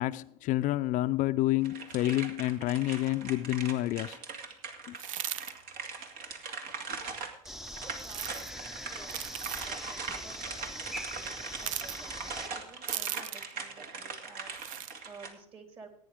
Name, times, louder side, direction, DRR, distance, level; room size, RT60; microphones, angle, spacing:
voice 1, 0.0-4.2 4.9-5.0, left 15 dB, 50° left, 0.5 m, -29 dB
sound 1, 1.6-15.3, right 4 dB, 60° right, 2.3 m, -41 dB
sound 2, 5.0-5.5 8.0-8.5 9.1-9.7 11.6-12.0 12.9-13.5 14.5-14.9, right 11 dB, 90° right, 0.5 m, -37 dB
sound 3, 7.4-12.5, equal, ahead, 0.7 m, -42 dB
voice 2, 7.7-15.9, right 4 dB, 35° right, 3.5 m, -53 dB
17.0 x 9.6 x 3.6 m
hypercardioid pair, 85°, 16 cm